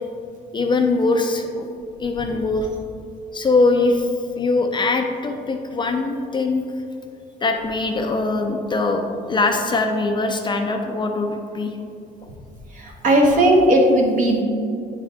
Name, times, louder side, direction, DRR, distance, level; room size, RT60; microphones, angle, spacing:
voice 1, 0.5-1.7 2.0-2.7 3.3-4.1 4.4-6.6 7.4-11.8 12.2-12.3 13.3-13.4, left 3 dB, 25° left, 4 dB, 0.4 m, -22 dB
voice 2, 12.7-14.4, right 1 dB, 50° right, 0 dB, 1.2 m, -16 dB
8.2 x 3.8 x 3.4 m, 2.4 s
cardioid pair, 110°, 17 cm